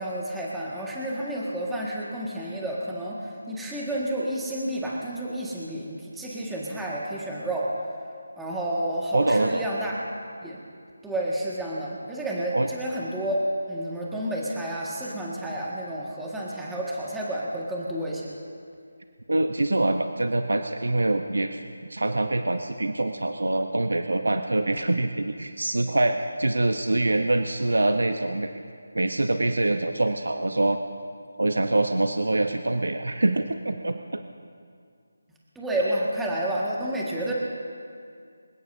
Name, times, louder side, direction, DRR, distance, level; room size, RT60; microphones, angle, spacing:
voice 1, 0.0-7.7 8.4-10.0 10.4-10.6 11.0-13.4 13.7-18.3 35.5-37.3, right 1 dB, 5° right, -5 dB, 1.8 m, -30 dB
voice 2, 9.1-9.6 12.5-12.7 19.3-21.6 21.9-28.5 28.9-30.8 31.4-34.2, right 2 dB, 80° right, 7 dB, 0.8 m, -24 dB
26.0 x 17.0 x 2.7 m, 2.3 s
figure-of-eight pair, 165°, 0 cm